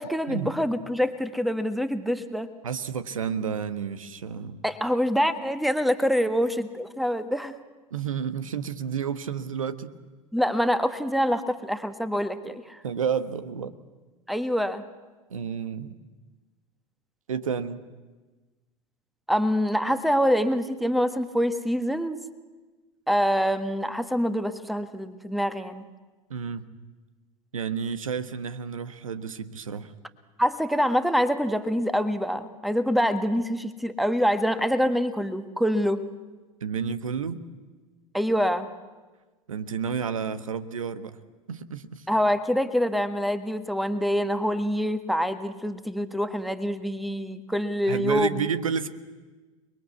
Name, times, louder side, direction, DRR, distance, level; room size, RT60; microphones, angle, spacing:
voice 1, 0.0-2.5 4.6-7.5 10.3-12.8 14.3-14.8 19.3-22.2 23.1-25.8 30.4-36.0 38.1-38.7 42.1-48.5, equal, ahead, 11 dB, 1.5 m, -25 dB
voice 2, 2.6-4.6 7.9-9.9 12.8-13.7 15.3-15.9 17.3-17.8 26.3-26.6 27.5-29.9 36.6-37.4 39.5-41.2 41.5-42.1 47.9-48.9, right 7 dB, 75° right, 13 dB, 1.3 m, -31 dB
29.0 x 21.5 x 8.3 m, 1.3 s
figure-of-eight pair, 75°, 17 cm